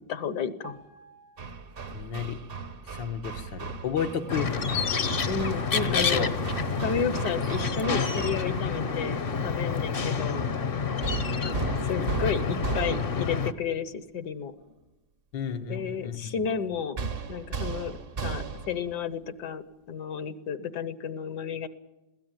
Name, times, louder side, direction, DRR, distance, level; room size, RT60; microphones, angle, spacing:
voice 1, 0.1-0.8 5.3-6.3 6.8-10.4 11.4-14.5 15.7-17.0 17.3-21.7, left 6 dB, 70° left, 14 dB, 1.6 m, -32 dB
sound 1, 0.6-2.3 2.5-2.8, right 2 dB, 75° right, 3.2 m, -51 dB
Hammer, 1.4-8.8 11.0-13.4 17.0-18.9, right 5 dB, 40° right, 0.9 m, -36 dB
voice 2, 1.9-2.4 2.9-4.5 5.9-6.3 12.0-12.4 15.3-16.4, left 7 dB, 85° left, 7 dB, 1.9 m, -32 dB
sound 2, 4.3-13.5, left 5 dB, 40° left, 0.8 m, -29 dB
21.5 x 17.0 x 9.0 m, 1.0 s
omnidirectional pair, 1.9 m